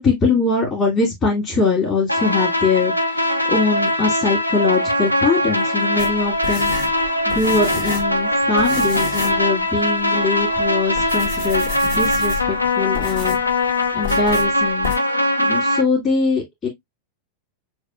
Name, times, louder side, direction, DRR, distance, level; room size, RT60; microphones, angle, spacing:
voice 1, 0.0-6.7 7.3-13.6 13.9-16.7, left 4 dB, 30° left, 2.2 m, -22 dB
sound 1, 2.1-15.8, left 1 dB, 85° left, 0.6 m, -21 dB
sound 2, 6.0-8.2 8.6-9.4 9.8-9.9 10.5-10.6 10.9-12.6 12.9-13.5 14.0-14.5 14.8-15.0, left 5 dB, 60° left, 2.3 m, -30 dB
6.5 x 2.7 x 2.4 m
figure-of-eight pair, 90°, 0 cm